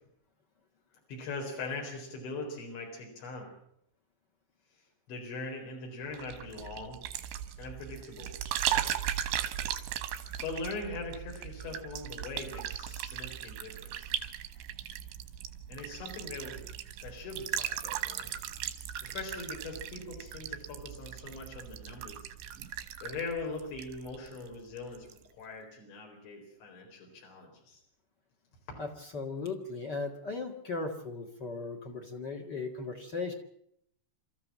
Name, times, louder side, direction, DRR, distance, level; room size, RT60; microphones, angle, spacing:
voice 1, 1.1-3.5 5.1-7.0 7.6-8.3 9.5-9.6 10.4-14.1 15.7-16.7 17.0-18.3 19.0-22.3 23.0-25.1 25.4-27.8 28.7-28.8, left 3 dB, 80° left, 0 dB, 6.6 m, -41 dB
sound 1, 6.1-24.5 24.8-25.2, right 11 dB, 90° right, 3.8 m, -37 dB
voice 2, 28.8-33.3, left 3 dB, 50° left, 4 dB, 1.2 m, -37 dB
28.0 x 14.0 x 7.5 m, 0.72 s
omnidirectional pair, 5.1 m